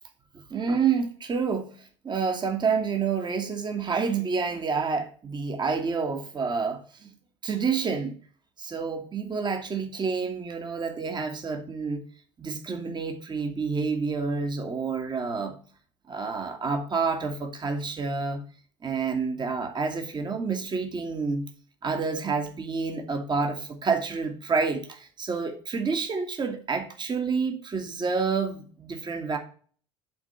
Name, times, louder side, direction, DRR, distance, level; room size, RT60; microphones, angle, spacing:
voice 1, 0.3-7.1 7.4-8.1 8.6-12.0 12.4-15.6 16.1-18.4 18.8-21.5 21.8-29.4, right 5 dB, 30° right, 5 dB, 1.6 m, -28 dB
8.6 x 3.7 x 6.8 m, 0.43 s
hypercardioid pair, 65°, 16 cm